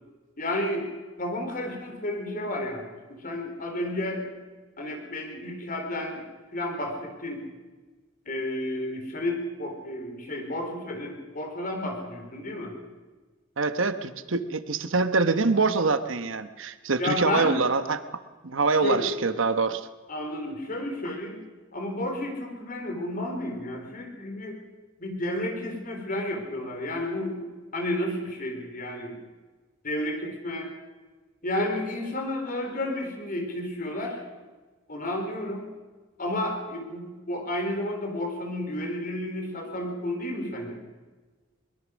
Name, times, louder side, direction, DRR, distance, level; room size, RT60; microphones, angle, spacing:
voice 1, 0.4-0.9 1.2-2.9 3.2-4.3 4.8-6.3 6.5-7.4 8.3-12.8 17.0-17.5 18.8-19.1 20.1-21.4 21.7-24.6 25.0-27.4 27.7-29.2 29.8-30.7 31.4-34.2 34.9-35.7 36.2-40.8, left 1 dB, 45° left, 3 dB, 3.9 m, -31 dB
voice 2, 13.6-18.1 18.4-19.9, right 4 dB, 75° right, 11 dB, 1.1 m, -25 dB
22.5 x 21.5 x 6.3 m, 1.3 s
head